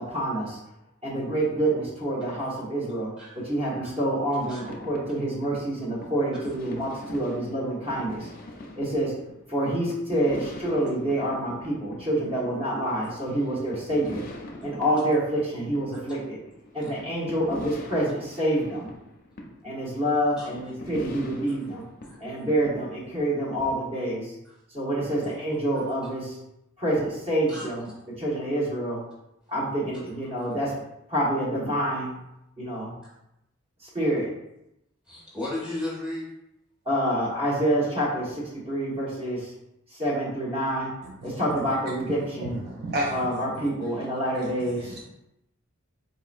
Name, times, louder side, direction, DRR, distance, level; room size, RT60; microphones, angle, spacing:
voice 1, 0.1-0.6 1.0-3.1 3.4-8.3 8.8-9.1 9.5-14.2 14.6-16.4 16.7-18.9 19.6-21.9 22.2-24.3 24.7-26.4 26.8-27.9 28.2-29.0 29.5-30.7 31.1-32.2 32.6-33.0 33.8-34.3 36.8-39.5 39.9-40.9 41.2-42.6 43.1-45.0, right 1 dB, 30° right, -5 dB, 1.1 m, -27 dB
sound 1, 4.4-23.7, left 1 dB, 45° left, 0.5 m, -43 dB
voice 2, 35.0-36.3, left 1 dB, 5° right, -8 dB, 1.4 m, -35 dB
voice 3, 42.4-43.2 44.8-45.1, right 1 dB, 50° right, -1 dB, 0.4 m, -31 dB
4.1 x 2.8 x 2.4 m, 0.86 s
head